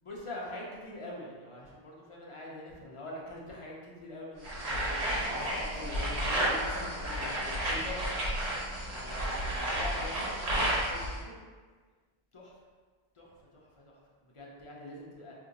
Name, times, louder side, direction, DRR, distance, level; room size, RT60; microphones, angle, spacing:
voice 1, 0.0-6.3 7.7-8.1 8.8-11.4 12.3-12.5 13.1-15.3, left 1 dB, 40° left, -4 dB, 0.5 m, -44 dB
sound 1, 4.4-11.2, right 1 dB, 85° right, 1.2 m, -32 dB
voice 2, 5.8-7.9, left 2 dB, 65° left, -6 dB, 0.9 m, -44 dB
2.6 x 2.4 x 3.9 m, 1.5 s
omnidirectional pair, 1.1 m